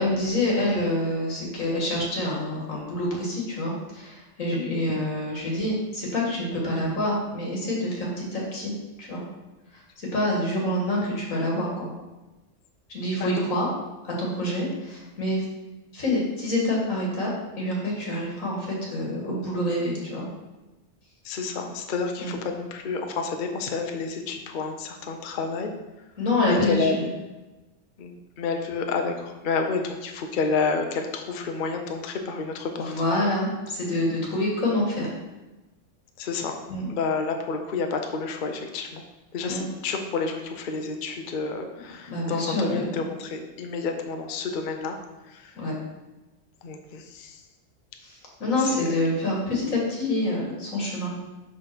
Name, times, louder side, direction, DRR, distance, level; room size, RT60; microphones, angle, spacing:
voice 1, 0.0-8.7 9.0-9.2 9.7-11.9 12.9-13.7 14.0-15.5 15.9-17.3 17.6-20.3 22.2-22.4 26.2-27.1 32.8-35.1 36.7-36.9 39.5-39.7 42.1-42.9 45.6-45.7 48.0-51.1, left 1 dB, 85° left, -3 dB, 2.1 m, -27 dB
voice 2, 21.2-25.7 26.7-27.0 28.0-32.9 36.2-36.6 36.9-39.0 39.3-45.0 45.3-45.5 46.6-47.4 48.6-48.9, left 4 dB, 50° left, 4 dB, 0.7 m, -30 dB
5.5 x 3.6 x 5.9 m, 1.1 s
omnidirectional pair, 1.4 m